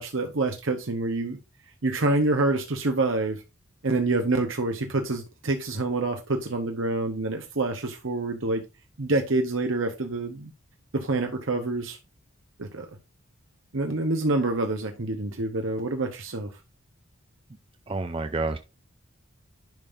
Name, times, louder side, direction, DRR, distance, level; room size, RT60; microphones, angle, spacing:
voice 1, 0.0-1.4 1.8-3.4 3.8-8.6 9.0-10.5 10.9-12.0 12.6-12.9 13.7-16.5, right 2 dB, 65° right, 1.0 m, -27 dB
voice 2, 17.9-18.6, right 3 dB, 25° right, 0.4 m, -28 dB
10.5 x 5.4 x 2.6 m
head